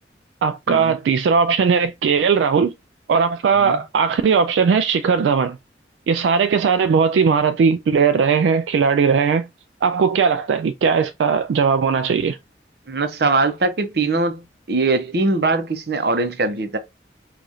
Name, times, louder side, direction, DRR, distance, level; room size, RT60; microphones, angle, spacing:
voice 1, 0.4-2.7 3.1-5.6 6.1-9.5 9.8-12.4, right 6 dB, 90° right, 0.3 m, -18 dB
voice 2, 12.9-16.8, right 3 dB, 65° right, 0.7 m, -21 dB
4.8 x 2.4 x 2.7 m
head